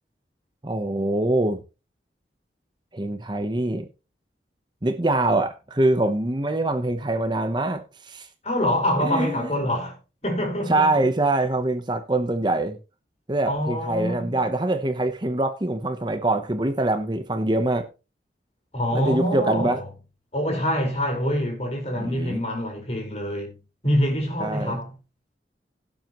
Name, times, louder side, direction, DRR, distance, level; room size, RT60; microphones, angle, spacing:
voice 1, 0.6-1.6 2.9-3.9 4.8-8.3 9.0-9.5 10.7-12.8 13.3-17.9 18.9-19.8 22.0-22.4 24.4-24.8, right 2 dB, 25° right, 0.9 m, -24 dB
voice 2, 8.4-10.0 10.2-11.0 13.4-14.4 18.7-19.9 20.3-23.5 23.8-24.9, equal, 35° left, 4.6 m, -25 dB
17.0 x 7.6 x 3.0 m
head